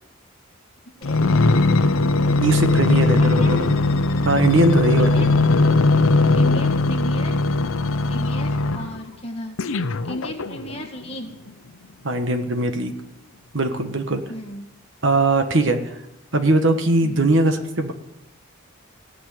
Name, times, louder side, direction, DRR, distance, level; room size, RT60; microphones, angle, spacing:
sound 1, 1.0-9.0 9.6-10.9 11.5-11.6, left 2 dB, 80° left, 0.7 m, -19 dB
voice 1, 2.4-3.7 4.2-5.3 12.0-12.9 13.5-14.2 15.0-15.8 16.3-17.9, right 2 dB, 60° right, 7 dB, 1.4 m, -20 dB
voice 2, 2.9-3.7 5.0-5.4 6.3-7.4 8.0-9.6 10.0-11.4 14.3-14.6 17.0-17.3, equal, 30° left, 1 dB, 2.0 m, -35 dB
17.5 x 6.2 x 9.4 m, 0.91 s
head